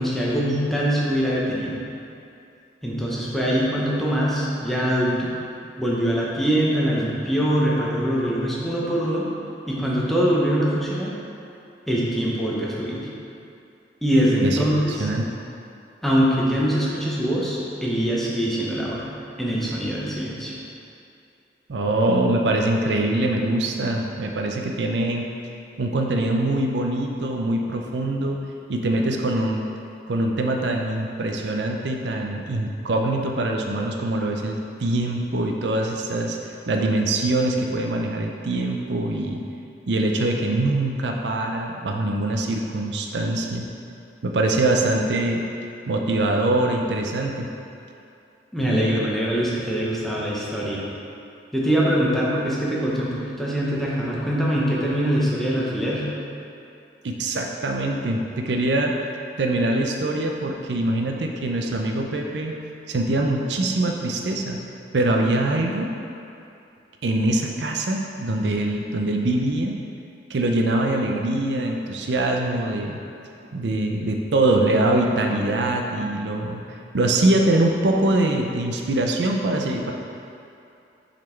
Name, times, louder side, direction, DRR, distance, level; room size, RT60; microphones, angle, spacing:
voice 1, 0.0-1.8 2.8-5.3 5.8-9.3 9.7-11.1 11.9-13.1 14.0-15.1 16.0-19.1 19.4-20.5 48.5-50.8 51.5-56.1, equal, ahead, -6 dB, 0.9 m, -23 dB
voice 2, 14.4-15.3 21.7-25.2 25.8-28.4 28.7-29.6 30.1-39.4 39.9-43.6 44.2-45.5 45.9-47.5 48.6-49.0 57.0-59.0 59.4-62.5 62.9-64.6 64.9-65.9 67.0-69.7 70.3-73.0 73.5-76.6 76.9-79.9, right 2 dB, 75° right, 2 dB, 0.5 m, -23 dB
6.1 x 4.2 x 4.4 m, 2.6 s
head